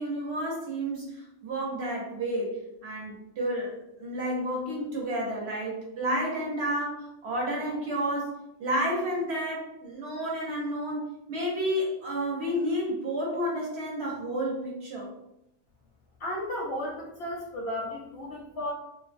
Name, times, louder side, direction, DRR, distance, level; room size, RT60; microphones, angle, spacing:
voice 1, 0.0-15.1, equal, 60° right, -3 dB, 0.8 m, -31 dB
voice 2, 16.2-18.7, left 1 dB, 65° left, -4 dB, 0.7 m, -34 dB
2.5 x 2.1 x 2.5 m, 0.82 s
omnidirectional pair, 1.4 m